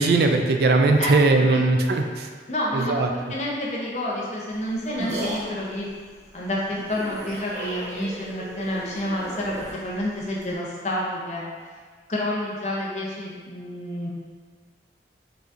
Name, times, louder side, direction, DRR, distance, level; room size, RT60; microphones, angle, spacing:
voice 1, 0.0-2.3 2.9-3.1, right 3 dB, 60° right, 4 dB, 0.3 m, -19 dB
voice 2, 1.0-1.6 2.5-5.9 6.3-11.5 12.1-14.1, left 1 dB, 40° left, -4 dB, 0.7 m, -29 dB
sound 1, 4.5-10.5, right 1 dB, 40° right, 0.7 m, -36 dB
5.6 x 2.7 x 2.5 m, 1.6 s
head